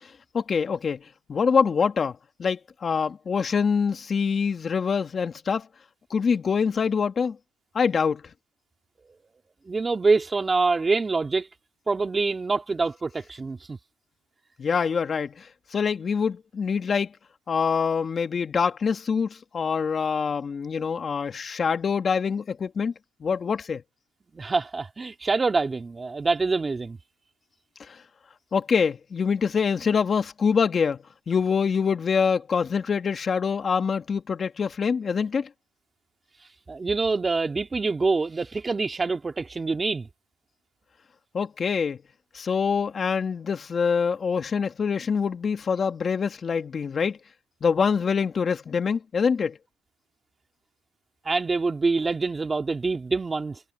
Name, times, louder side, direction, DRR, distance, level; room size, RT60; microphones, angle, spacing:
voice 1, 0.0-5.7 6.1-7.4 7.7-8.2 14.6-17.1 17.5-22.9 23.2-23.8 27.8-28.0 28.5-35.5 41.3-42.0 42.3-47.2 47.6-49.6, left 6 dB, 30° left, 1.7 m, -25 dB
voice 2, 9.7-11.5 11.9-13.8 24.3-27.0 36.7-40.1 51.2-53.6, right 3 dB, 20° right, 2.7 m, -25 dB
supercardioid pair, 110°, 0 cm